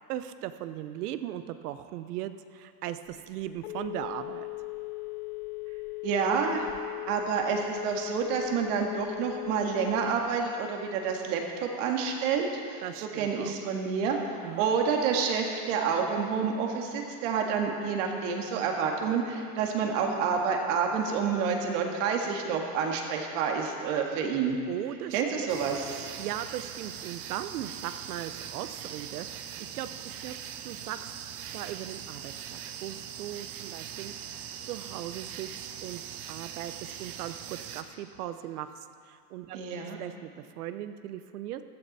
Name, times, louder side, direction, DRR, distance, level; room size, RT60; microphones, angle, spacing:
voice 1, 0.1-4.5 12.8-13.8 14.4-14.7 24.7-25.2 26.2-30.4 30.6-31.1 31.5-35.5 35.8-36.0 36.3-39.6 39.9-41.6, right 12 dB, 85° right, 11 dB, 0.9 m, -38 dB
Telephone, 3.1-10.4, left 25 dB, 80° left, 0.7 m, -38 dB
voice 2, 6.0-6.7 7.1-14.2 14.6-24.6 25.1-26.1 39.5-40.0, right 6 dB, 55° right, 2 dB, 1.9 m, -28 dB
sound 1, 25.5-37.8, right 9 dB, 25° right, 0.4 m, -41 dB
15.0 x 12.5 x 4.2 m, 2.3 s
supercardioid pair, 165°, 44 cm